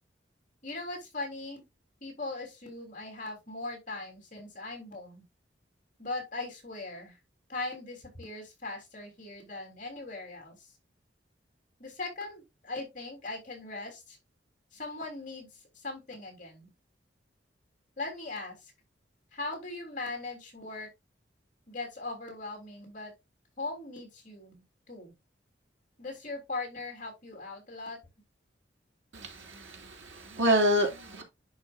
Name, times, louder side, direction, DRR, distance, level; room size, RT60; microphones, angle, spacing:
voice 1, 0.6-1.7 2.0-5.2 6.0-7.2 7.5-10.7 11.8-14.2 14.7-16.7 18.0-18.7 19.3-20.9 21.7-23.1 23.6-25.1 26.0-28.0, left 2 dB, 45° left, 3.2 m, -39 dB
voice 2, 29.1-31.2, equal, 85° right, 2.4 m, -28 dB
10.5 x 5.0 x 2.5 m
head